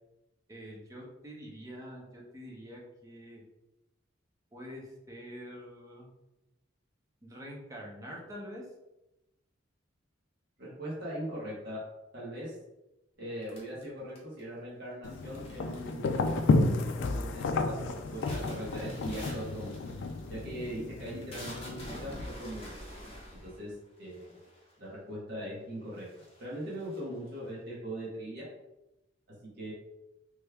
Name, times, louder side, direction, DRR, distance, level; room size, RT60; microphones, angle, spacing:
voice 1, 0.5-3.4 4.5-6.1 7.2-8.6, equal, 15° right, -2 dB, 0.7 m, -45 dB
voice 2, 10.6-11.8 12.1-12.6 13.2-19.8 20.3-22.8 23.4-23.7 24.0-24.4 24.8-26.1 26.4-28.4 29.6-29.7, right 1 dB, 60° right, -6 dB, 1.1 m, -40 dB
sound 1, 13.5-14.6 15.3-15.9 16.2-16.7 17.1-17.4 17.8-24.8 25.5-25.6 25.9-27.5, left 1 dB, 30° left, 0.9 m, -47 dB
sound 2, 15.0-22.2, left 3 dB, 65° left, 0.3 m, -32 dB
3.4 x 3.2 x 2.3 m, 0.94 s
head